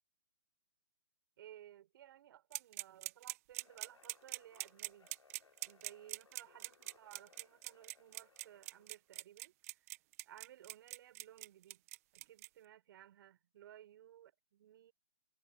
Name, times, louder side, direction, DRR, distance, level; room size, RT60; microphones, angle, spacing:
voice 1, 1.4-5.1 5.6-9.8 10.2-11.8 12.1-14.9, right 12 dB, 45° right, 4.9 m, -58 dB
sound 1, 2.5-12.5, right 19 dB, 30° right, 0.9 m, -44 dB
sound 2, 3.6-9.0, left 5 dB, 75° left, 6.9 m, -68 dB
hypercardioid pair, 150°, 16 cm